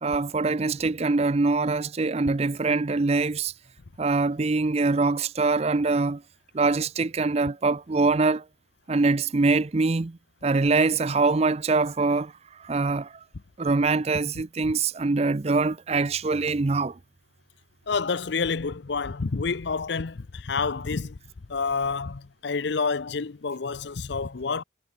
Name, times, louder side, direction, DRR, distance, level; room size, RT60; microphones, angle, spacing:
voice 1, 0.0-3.5 4.0-6.2 6.5-8.4 8.9-12.3 12.6-13.1 13.6-17.0, right 3 dB, 30° right, 0.5 m, -24 dB
voice 2, 17.9-21.2 21.5-24.6, left 4 dB, 60° left, 0.6 m, -28 dB
head